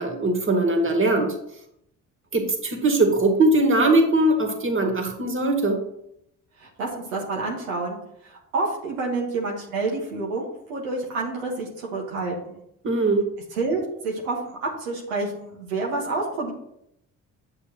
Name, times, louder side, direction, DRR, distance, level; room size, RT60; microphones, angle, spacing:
voice 1, 0.0-1.4 2.3-5.8 12.8-13.3, right 2 dB, 30° right, 3 dB, 2.0 m, -21 dB
voice 2, 6.6-8.0 8.2-12.6 13.5-16.5, right 3 dB, 90° right, -1 dB, 1.5 m, -28 dB
8.7 x 6.5 x 3.0 m, 0.75 s
hypercardioid pair, 50°, 38 cm